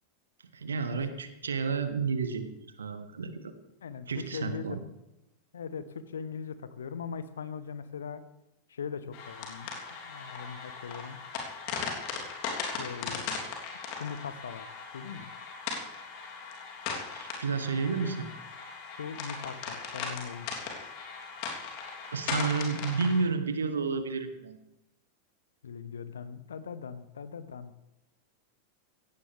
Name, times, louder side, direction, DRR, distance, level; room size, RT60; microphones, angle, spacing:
voice 1, 0.5-2.5 2.8-3.5 4.1-4.8 17.1-18.3 20.6-20.9 22.1-24.6, right 5 dB, 70° right, 10 dB, 1.4 m, -31 dB
voice 2, 3.8-4.8 5.5-8.2 8.7-11.2 11.9-12.0 12.8-13.3 14.0-15.3 19.0-20.5 25.6-27.8, left 6 dB, 65° left, 13 dB, 1.1 m, -40 dB
sound 1, 9.1-23.2, left 5 dB, 45° left, 3.2 m, -38 dB
16.5 x 16.5 x 3.5 m, 0.91 s
figure-of-eight pair, 90°, 0 cm